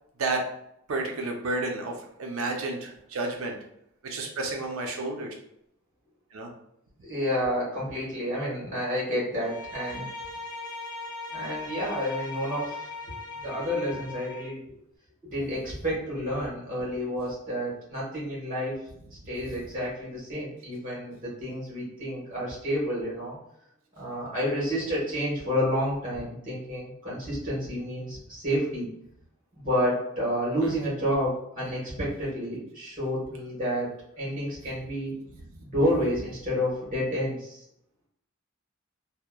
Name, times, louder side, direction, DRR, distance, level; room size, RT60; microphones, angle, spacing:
voice 1, 0.9-1.9 2.2-3.6 4.0-5.3 6.3-6.5 19.4-19.6, right 3 dB, 80° right, 2 dB, 0.5 m, -31 dB
voice 2, 7.0-10.0 11.3-12.9 13.4-14.7 15.3-18.8 19.3-23.4 24.0-28.9 29.6-35.1 35.6-37.6, equal, 40° right, -6 dB, 1.2 m, -30 dB
Bowed string instrument, 9.4-14.6, left 3 dB, 80° left, 0.6 m, -39 dB
2.8 x 2.1 x 2.2 m, 0.74 s
head